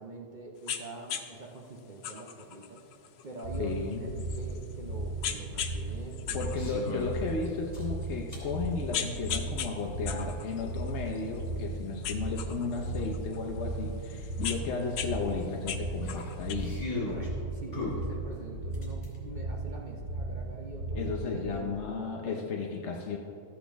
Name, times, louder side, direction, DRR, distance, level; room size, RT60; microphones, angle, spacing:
voice 1, 0.0-7.1 17.1-22.5, right 2 dB, 70° right, -1 dB, 0.4 m, -44 dB
sound 1, 0.7-0.8 1.1-1.2 2.0-4.7 5.2-5.8 6.1-7.5 8.0-8.1 8.6-9.7 10.1-11.6 12.0-13.4 14.0-15.1 15.4-16.5, left 9 dB, 85° left, 1.3 m, -37 dB
sound 2, 3.4-21.5, right 2 dB, 45° right, 2.4 m, -37 dB
voice 2, 3.6-4.1 6.3-16.8 20.9-23.2, left 4 dB, 60° left, 1 dB, 0.7 m, -34 dB
sound 3, 6.5-7.2 7.7-8.5 10.0-10.1 12.8-12.9 13.1-13.2 13.7-13.8 15.4-17.3 17.7-19.2, left 3 dB, 30° left, 2.4 m, -38 dB
13.0 x 8.1 x 3.5 m, 2.7 s
omnidirectional pair, 1.9 m